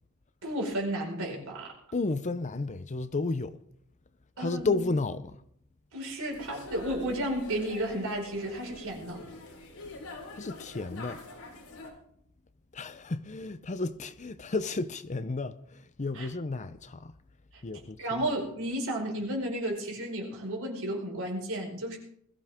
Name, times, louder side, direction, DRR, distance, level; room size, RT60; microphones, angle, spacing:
voice 1, 0.4-1.7 4.4-4.7 5.9-9.2 16.1-16.3 17.5-17.6 18.0-22.0, right 1 dB, 65° right, 4.9 m, -33 dB
voice 2, 1.9-3.6 4.4-5.4 10.3-11.2 12.7-17.1 17.6-18.3, left 3 dB, 35° left, 0.6 m, -32 dB
sound 1, 6.3-11.9, left 2 dB, 70° left, 4.6 m, -45 dB
21.0 x 15.0 x 3.6 m
head